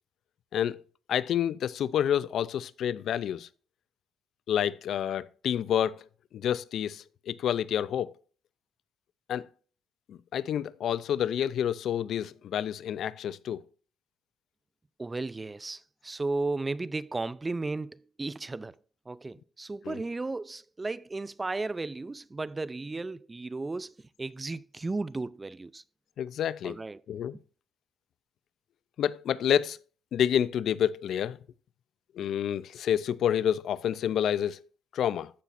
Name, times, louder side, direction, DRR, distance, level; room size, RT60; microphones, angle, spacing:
voice 1, 1.1-3.5 4.5-6.0 6.3-8.1 9.3-9.5 10.1-13.6 19.8-20.0 26.2-26.8 27.1-27.4 29.0-29.8 30.1-31.4 32.2-34.6 34.9-35.3, left 9 dB, 70° left, 0.4 m, -28 dB
voice 2, 15.0-18.7 19.1-25.8 26.6-27.0, right 3 dB, 20° right, 0.3 m, -34 dB
15.0 x 5.8 x 2.5 m
cardioid pair, 90°, 0 cm